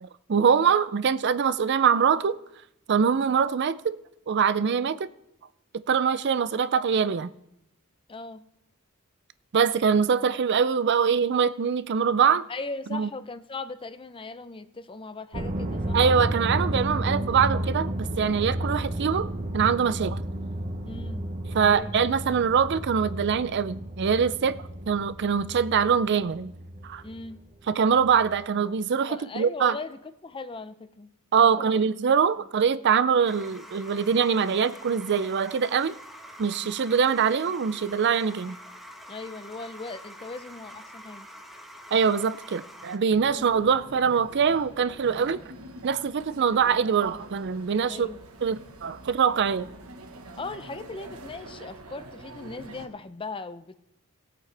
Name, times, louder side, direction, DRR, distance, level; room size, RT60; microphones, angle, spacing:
voice 1, 0.0-2.4 2.9-4.0 4.3-5.1 5.9-7.3 9.5-12.4 12.9-13.1 15.9-20.2 21.5-24.6 24.9-26.5 26.8-27.0 27.7-29.8 31.3-35.9 36.4-38.6 41.9-45.4 45.8-48.1 48.4-49.7, right 6 dB, 55° right, 0.4 m, -23 dB
voice 2, 8.1-8.5 12.5-16.4 20.8-21.2 21.6-22.0 27.0-27.5 29.1-31.1 31.4-31.8 32.4-32.5 39.1-41.3 43.2-43.5 47.9-48.2 50.4-53.7, left 3 dB, 25° left, 0.5 m, -39 dB
sound 1, 15.3-27.5 27.9-28.4, right 1 dB, 35° right, 0.9 m, -32 dB
sound 2, 33.3-43.0, equal, ahead, 1.3 m, -46 dB
sound 3, 43.1-52.9, right 2 dB, 85° right, 1.4 m, -45 dB
18.0 x 8.4 x 3.4 m
head